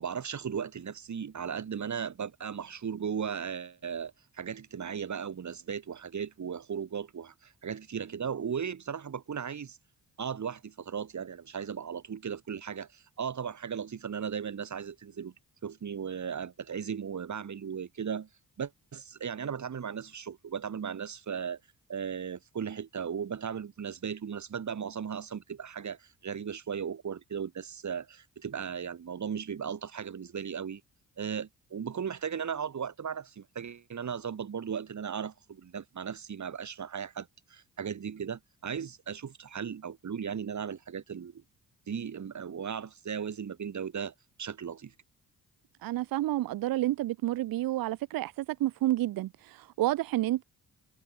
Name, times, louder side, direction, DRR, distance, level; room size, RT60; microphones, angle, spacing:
voice 1, 0.0-9.8 10.2-15.3 15.6-18.3 18.6-21.6 21.9-30.8 31.2-41.4 41.9-44.9, right 7 dB, 45° right, 1.8 m, -36 dB
voice 2, 45.8-50.4, right 15 dB, 65° right, 0.5 m, -30 dB
supercardioid pair, 55°, 38 cm